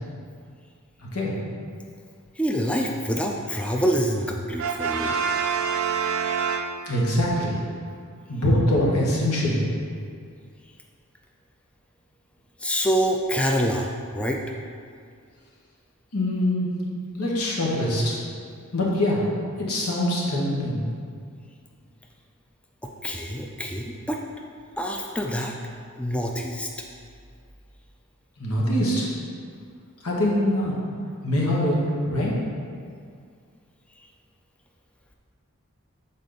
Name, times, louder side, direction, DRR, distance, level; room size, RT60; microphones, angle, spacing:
voice 1, 2.4-5.2 12.6-14.4 22.8-24.2 24.8-25.5 26.0-26.7, equal, 5° left, 1 dB, 0.3 m, -26 dB
Brass instrument, 4.6-7.2, right 6 dB, 65° right, 0.4 m, -26 dB
voice 2, 6.9-7.5 8.3-9.7 16.1-16.7 17.2-18.1 18.7-19.2 19.7-20.8 28.4-29.1 30.0-30.7 31.2-31.8 32.0-32.3, left 1 dB, 85° left, -4 dB, 1.4 m, -23 dB
6.8 x 4.2 x 3.9 m, 2.2 s
head